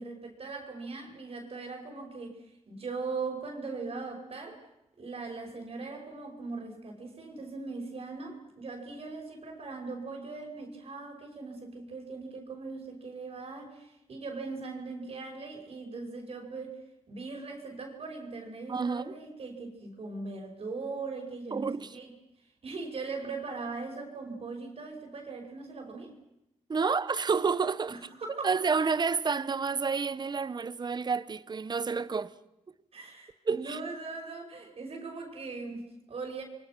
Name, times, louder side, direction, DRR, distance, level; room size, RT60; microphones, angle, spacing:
voice 1, 0.0-2.4 2.7-4.6 5.0-16.8 17.1-22.1 22.6-26.1 27.9-28.5 32.9-36.4, right 4 dB, 55° right, 5.8 m, -40 dB
voice 2, 18.7-19.2 21.5-22.0 26.7-28.0 28.4-32.3 33.5-33.8, right 5 dB, 35° right, 1.0 m, -29 dB
28.5 x 23.5 x 6.2 m
cardioid pair, 100°, 12 cm